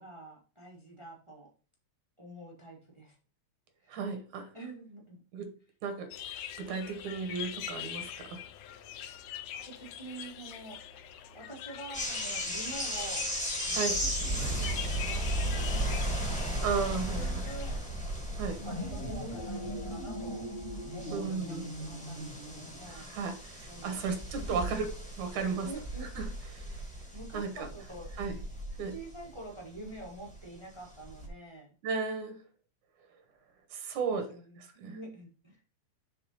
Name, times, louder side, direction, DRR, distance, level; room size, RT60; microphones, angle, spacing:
voice 1, 0.0-1.5 2.2-3.1 3.8-3.9 4.5-5.2 9.5-11.1 11.3-13.3 13.6-16.2 17.1-17.8 18.6-20.5 20.9-23.1 23.7-24.0 24.4-26.3 27.1-28.1 28.9-31.7 33.9-35.7, right 2 dB, 55° right, 0.3 m, -47 dB
voice 2, 3.9-4.5 5.3-5.5 5.8-6.1 6.6-8.4 13.7-14.0 16.6-17.3 18.4-18.6 21.1-21.6 22.9-24.9 25.2-25.7 26.2-26.3 26.5-26.8 27.3-27.5 28.2-28.4 28.8-28.9 31.8-32.4 33.7-35.0, right 5 dB, 80° right, 2.7 m, -34 dB
sound 1, 6.1-17.7, left 10 dB, 75° left, 1.7 m, -43 dB
sound 2, 11.9-30.5 30.8-31.3, right 1 dB, 5° left, 0.6 m, -36 dB
sound 3, 18.5-23.1, equal, 25° left, 0.9 m, -40 dB
6.6 x 3.7 x 5.3 m
omnidirectional pair, 3.3 m